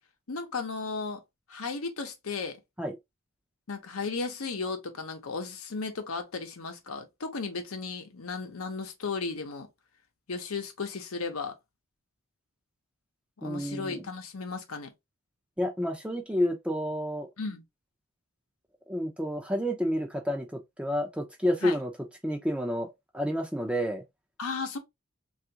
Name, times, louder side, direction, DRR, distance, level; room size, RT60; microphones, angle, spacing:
voice 1, 0.3-1.2 1.5-2.6 3.7-9.7 10.3-11.6 13.4-14.9 17.4-17.6 21.6-21.8 24.4-24.8, left 4 dB, 80° left, 0.8 m, -35 dB
voice 2, 13.4-14.1 15.6-17.3 18.9-21.9 22.2-24.0, equal, 5° right, 0.5 m, -30 dB
3.4 x 2.4 x 2.8 m
head